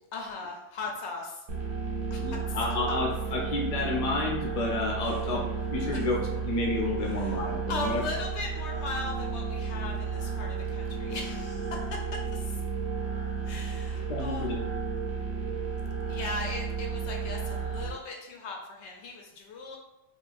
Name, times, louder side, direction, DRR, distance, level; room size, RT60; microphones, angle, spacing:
voice 1, 0.1-1.4 2.1-2.6 5.0-5.2 5.9-6.0 7.0-7.4 7.7-11.8 12.3-12.6 13.4-14.5 16.1-19.8, left 3 dB, 75° left, 0 dB, 0.9 m, -38 dB
sound 1, 1.5-17.9, right 5 dB, 90° right, 1.1 m, -33 dB
voice 2, 2.2-8.0 13.9-14.6, left 2 dB, 40° left, -1 dB, 0.6 m, -30 dB
3.8 x 2.3 x 2.5 m, 0.92 s
omnidirectional pair, 1.2 m